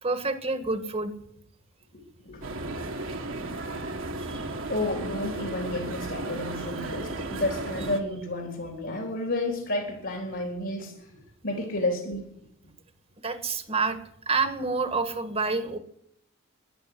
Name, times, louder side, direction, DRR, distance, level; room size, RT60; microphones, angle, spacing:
voice 1, 0.0-1.1 4.2-4.5 13.2-14.0 14.2-15.8, right 4 dB, 30° right, 8 dB, 1.6 m, -28 dB
voice 2, 1.9-2.4 4.7-10.9 11.4-12.2, left 2 dB, 60° left, 2 dB, 3.5 m, -31 dB
sound 1, 2.4-8.0, right 2 dB, 65° right, 2.0 m, -34 dB
13.0 x 11.0 x 9.9 m, 0.73 s
head